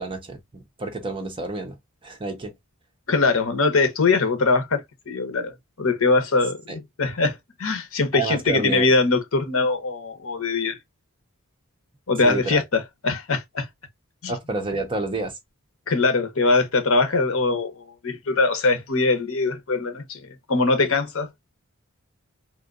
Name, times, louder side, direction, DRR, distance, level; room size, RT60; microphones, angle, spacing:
voice 1, 0.0-1.8 2.0-2.5 6.7-6.8 8.1-8.9 12.2-12.6 14.3-15.3, right 3 dB, 25° right, 0.8 m, -29 dB
voice 2, 3.1-10.8 12.1-13.7 14.2-14.3 15.9-21.3, left 3 dB, 65° left, 0.9 m, -22 dB
3.6 x 2.6 x 2.4 m
head